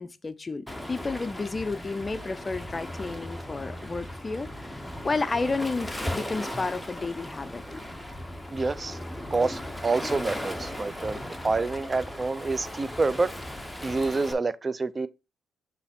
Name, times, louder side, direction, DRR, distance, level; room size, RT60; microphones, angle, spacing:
voice 1, 0.0-7.6, left 3 dB, 25° left, 0.5 m, -31 dB
Waves surf, 0.7-14.3, left 1 dB, 5° left, 1.0 m, -37 dB
voice 2, 8.5-9.0 9.3-13.3 13.8-15.1, right 3 dB, 30° right, 0.5 m, -27 dB
7.0 x 3.3 x 4.2 m
cardioid pair, 90°, 0 cm